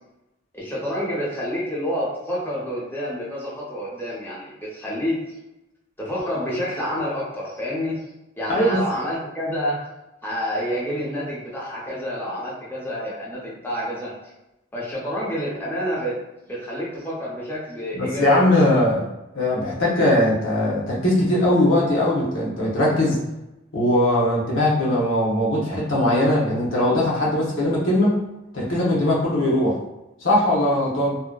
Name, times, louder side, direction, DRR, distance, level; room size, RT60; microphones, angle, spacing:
voice 1, 0.5-5.4 6.0-9.8 10.2-14.1 14.7-16.2 16.5-18.4, equal, 10° left, -6 dB, 0.6 m, -28 dB
voice 2, 17.9-19.1 19.3-23.2 23.7-28.2 28.5-29.8 30.2-31.2, left 1 dB, 80° left, -5 dB, 0.8 m, -20 dB
2.6 x 2.1 x 2.2 m, 0.96 s
head